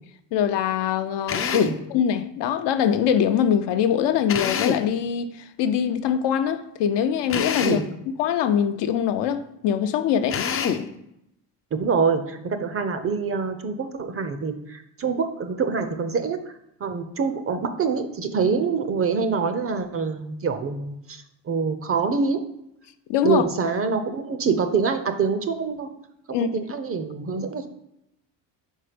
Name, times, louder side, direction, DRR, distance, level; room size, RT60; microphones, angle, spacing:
voice 1, 0.3-7.8 8.2-10.4 23.1-23.4 26.3-26.5, left 8 dB, 75° left, 0.6 m, -23 dB
Drill, 1.3-1.8 4.3-4.9 7.3-7.9 10.3-10.9, left 7 dB, 35° left, 0.4 m, -25 dB
voice 2, 11.7-16.4 16.8-22.4 23.2-25.9 26.3-27.7, right 5 dB, 35° right, 0.5 m, -25 dB
4.5 x 4.2 x 5.1 m
cardioid pair, 115°, 43 cm